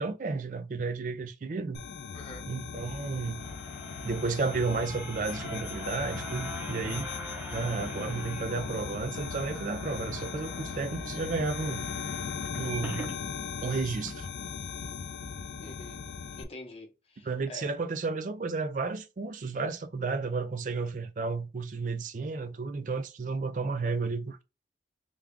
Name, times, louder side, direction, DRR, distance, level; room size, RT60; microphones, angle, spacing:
voice 1, 0.0-1.8 2.5-3.4 4.0-7.1 7.5-11.8 12.6-13.1 13.6-14.3 14.8-14.9 17.3-24.4, right 4 dB, 45° right, 0.4 m, -32 dB
sound 1, 1.7-16.4, left 5 dB, 70° left, 0.4 m, -38 dB
voice 2, 2.1-2.5 15.6-16.1 16.4-17.8, left 2 dB, 30° left, 0.9 m, -46 dB
sound 2, 3.0-13.2 13.7-13.8 14.0-14.1, right 2 dB, 10° right, 0.7 m, -45 dB
3.4 x 2.3 x 3.5 m
head